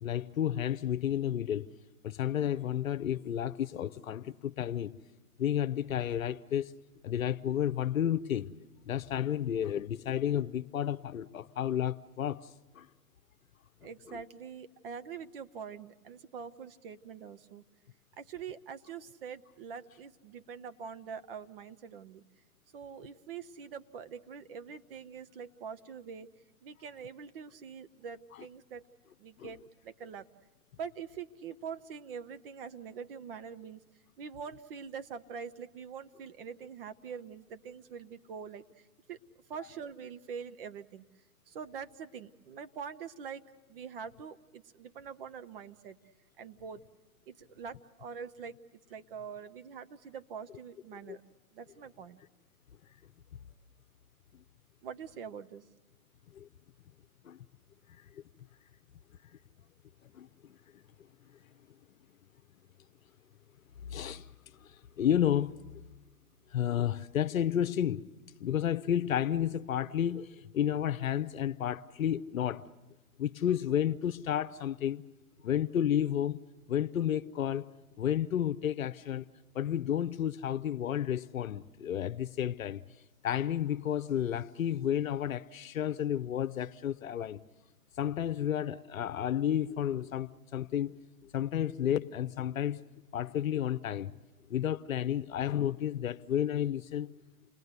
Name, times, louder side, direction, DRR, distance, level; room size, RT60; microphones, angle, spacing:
voice 1, 0.0-1.7 2.0-4.9 5.4-6.7 7.0-8.5 8.9-12.5 12.7-12.9 14.1-14.2 29.4-29.5 51.1-51.2 56.3-56.5 57.2-57.4 60.1-60.6 63.8-64.3 64.6-65.5 66.5-68.1 68.4-72.7 73.2-75.1 75.4-76.4 76.7-77.7 78.0-79.3 79.5-82.8 83.2-87.4 88.0-91.0 91.3-92.8 93.1-94.1 94.5-97.1, left 10 dB, 65° left, 0.9 m, -31 dB
voice 2, 13.8-17.6 18.2-22.2 22.7-26.3 26.6-28.8 29.2-30.3 30.8-33.8 34.2-39.2 39.5-41.0 41.5-43.4 43.7-46.0 46.4-46.8 47.3-48.6 48.9-51.2 51.5-52.2 54.8-55.6, right 6 dB, 40° right, 0.9 m, -44 dB
29.0 x 20.0 x 8.1 m
hypercardioid pair, 130°, 44 cm